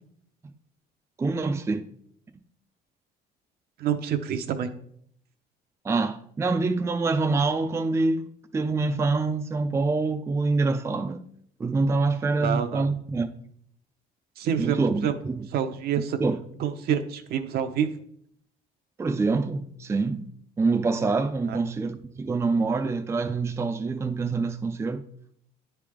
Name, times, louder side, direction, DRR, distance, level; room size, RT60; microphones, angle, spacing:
voice 1, 1.2-1.9 5.8-11.2 11.6-13.3 14.6-15.5 16.2-16.4 19.0-20.3 20.6-25.0, right 3 dB, 15° right, 0.4 m, -26 dB
voice 2, 3.8-4.7 12.4-12.9 14.4-15.2 15.5-16.2 16.6-17.9 21.5-21.6, right 8 dB, 65° right, 0.7 m, -27 dB
9.9 x 3.4 x 3.5 m
cardioid pair, 110°, 17 cm